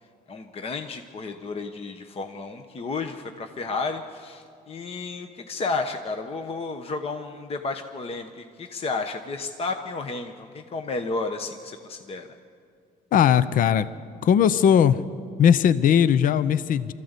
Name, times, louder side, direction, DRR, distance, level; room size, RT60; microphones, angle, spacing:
voice 1, 0.3-12.3, left 3 dB, 35° left, 6 dB, 1.1 m, -32 dB
voice 2, 13.1-13.9 14.2-15.0 15.4-16.9, left 8 dB, 55° left, 15 dB, 0.7 m, -18 dB
24.0 x 14.0 x 8.2 m, 2.3 s
cardioid pair, 110°, 17 cm